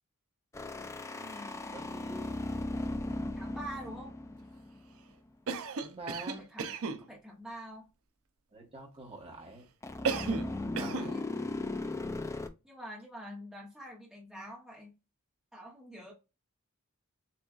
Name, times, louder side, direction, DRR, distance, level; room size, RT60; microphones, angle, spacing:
sound 1, 0.5-5.1 9.8-12.5, left 2 dB, 15° left, 0.3 m, -37 dB
voice 1, 1.2-1.7 3.3-4.1 6.3-6.7 7.1-7.9 10.9-11.2 12.6-14.9 15.5-16.1, right 1 dB, ahead, -4 dB, 0.9 m, -46 dB
voice 2, 1.7-2.3 5.8-6.5 8.5-9.6 10.8-11.2, right 2 dB, 25° right, 0 dB, 1.2 m, -45 dB
Cough, 5.5-7.0 10.0-10.5 10.8-11.1, right 5 dB, 70° right, 0.5 m, -34 dB
6.9 x 2.4 x 2.4 m, 0.28 s
head